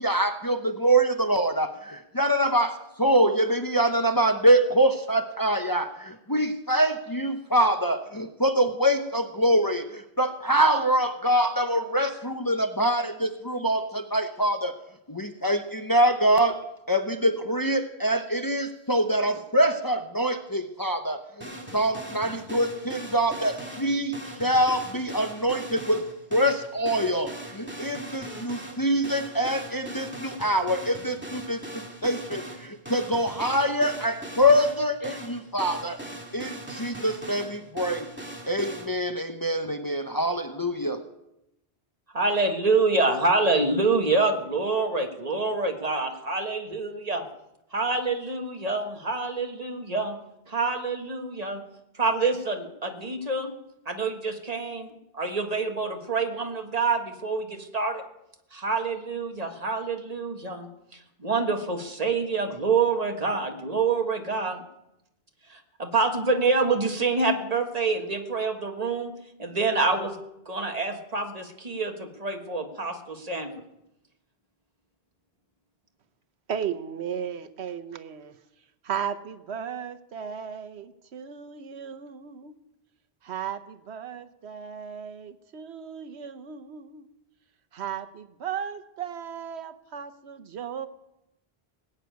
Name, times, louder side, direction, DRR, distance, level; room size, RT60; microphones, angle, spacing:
voice 1, 0.0-14.7 15.1-16.6 16.9-26.0 26.3-36.0 36.3-38.1 38.5-41.0, right 1 dB, 20° left, 6 dB, 0.7 m, -24 dB
sound 1, 21.4-38.9, right 1 dB, 10° right, 2.3 m, -40 dB
voice 2, 42.1-47.2 47.7-50.2 50.5-51.6 51.9-53.5 53.8-58.0 58.5-64.6 65.5-70.2 70.4-73.5, right 3 dB, 40° right, 4 dB, 1.6 m, -26 dB
voice 3, 76.5-78.3 78.8-82.5 83.2-87.1 87.7-90.9, right 8 dB, 85° right, 10 dB, 1.1 m, -35 dB
19.5 x 6.8 x 9.2 m, 0.87 s
omnidirectional pair, 1.1 m